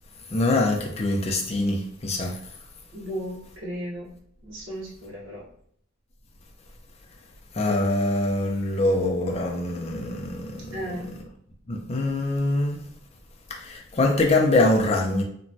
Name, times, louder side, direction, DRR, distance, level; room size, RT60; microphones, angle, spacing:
voice 1, 0.3-2.4 7.6-10.6 11.7-12.8 13.6-15.2, left 2 dB, 30° left, 0.4 m, -23 dB
voice 2, 2.9-4.1 4.4-5.4 10.7-11.1, equal, 75° right, 1.0 m, -35 dB
2.9 x 2.2 x 2.6 m
head